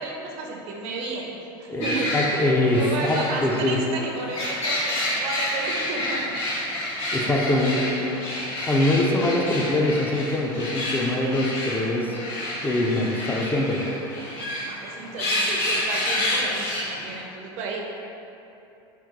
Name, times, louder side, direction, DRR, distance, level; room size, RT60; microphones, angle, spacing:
voice 1, 0.0-1.3 1.6-2.4 2.7-6.4 7.0-8.3 14.5-17.8, right 3 dB, 55° right, 0 dB, 0.5 m, -33 dB
voice 2, 1.7-3.8 7.1-7.8 8.7-12.2 12.6-13.8, left 1 dB, 15° left, -2 dB, 0.3 m, -23 dB
sound 1, 1.8-17.2, left 1 dB, 50° left, 1.1 m, -29 dB
3.5 x 2.2 x 2.9 m, 2.9 s
supercardioid pair, 110°, 13 cm